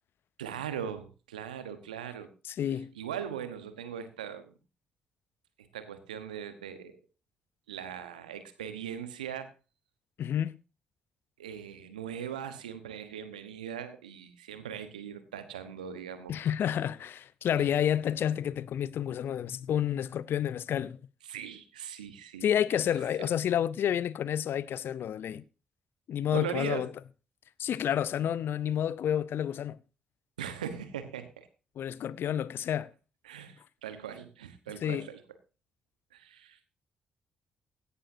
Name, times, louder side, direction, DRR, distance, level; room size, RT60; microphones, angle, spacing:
voice 1, 0.4-2.3 2.9-4.5 5.6-7.0 7.7-9.5 11.4-16.5 17.6-17.7 21.2-22.5 23.2-23.3 26.3-26.9 30.4-31.5 33.2-35.2 36.1-36.7, right 8 dB, 90° right, 1.1 m, -40 dB
voice 2, 2.5-2.9 10.2-10.5 16.3-21.0 22.4-25.4 26.1-26.9 27.6-29.8 31.8-32.9 34.8-35.1, left 10 dB, 60° left, 0.6 m, -30 dB
16.5 x 11.5 x 2.7 m
hypercardioid pair, 40°, 4 cm